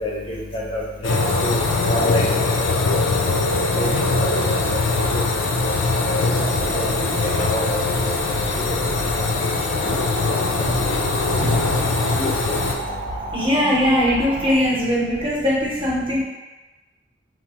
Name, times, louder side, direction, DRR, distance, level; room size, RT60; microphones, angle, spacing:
voice 1, 0.0-1.1 1.4-1.6 1.9-2.2 2.8-3.2 3.8-3.9 5.1-5.2 6.7-6.8 7.4-7.6 9.1-9.2 12.1-12.3 13.6-13.7, equal, 30° left, -4 dB, 0.4 m, -27 dB
sound 1, 1.0-12.7, left 3 dB, 90° left, 0.4 m, -21 dB
sound 2, 6.3-14.6, right 3 dB, 45° right, 0.3 m, -32 dB
voice 2, 13.3-16.2, equal, 30° right, -6 dB, 0.7 m, -20 dB
3.0 x 2.0 x 2.8 m, 1.2 s
head